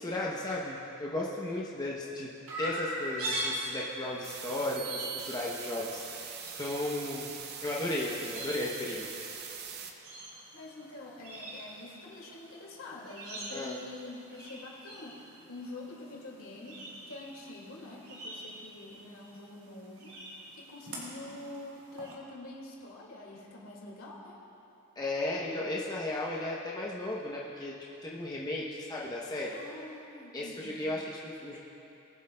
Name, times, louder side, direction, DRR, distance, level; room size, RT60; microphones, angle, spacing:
voice 1, 0.0-2.3 2.6-7.3 7.6-9.2 13.5-13.8 25.0-27.7 28.0-29.6 30.3-31.6, left 1 dB, 20° left, -4 dB, 0.7 m, -35 dB
Chirp tweet, 2.5-22.1, right 1 dB, 75° right, 2.2 m, -43 dB
sound 1, 4.2-9.9, right 7 dB, 45° right, 0.6 m, -42 dB
voice 2, 10.5-24.4 29.5-30.7, left 2 dB, 70° left, -3 dB, 2.0 m, -46 dB
20.5 x 7.8 x 2.2 m, 2.9 s
head